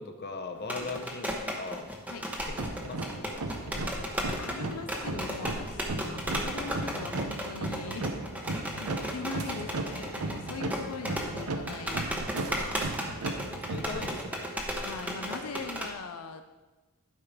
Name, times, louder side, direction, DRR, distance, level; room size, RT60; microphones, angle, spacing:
voice 1, 0.0-1.9 2.5-3.7 13.7-14.5, left 4 dB, 45° left, 5 dB, 0.8 m, -40 dB
sound 1, 0.6-15.9, equal, 5° right, 0.9 m, -35 dB
sound 2, 2.5-14.4, right 2 dB, 90° right, 0.8 m, -36 dB
voice 2, 4.4-8.1 8.4-12.8 14.8-16.4, left 4 dB, 85° left, 7 dB, 0.5 m, -41 dB
sound 3, 9.4-10.1 10.8-10.9 11.8-14.2, right 7 dB, 70° right, 0.5 m, -48 dB
11.5 x 4.8 x 5.1 m, 1.2 s
head